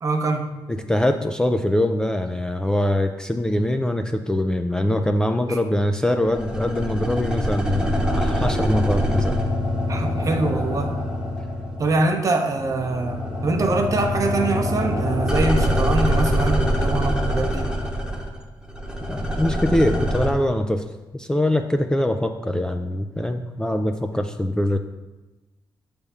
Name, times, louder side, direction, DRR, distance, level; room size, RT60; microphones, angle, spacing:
voice 1, 0.0-0.5 5.5-5.6 9.9-11.0 11.8-17.8, right 2 dB, 40° right, 5 dB, 0.8 m, -24 dB
voice 2, 0.8-9.4 19.1-20.9 21.1-24.8, left 1 dB, 10° left, 5 dB, 0.3 m, -23 dB
sound 1, 6.2-12.2 12.4-20.3, equal, 10° right, 0.9 m, -24 dB
7.0 x 3.5 x 5.4 m, 1.1 s
cardioid pair, 110°, 8 cm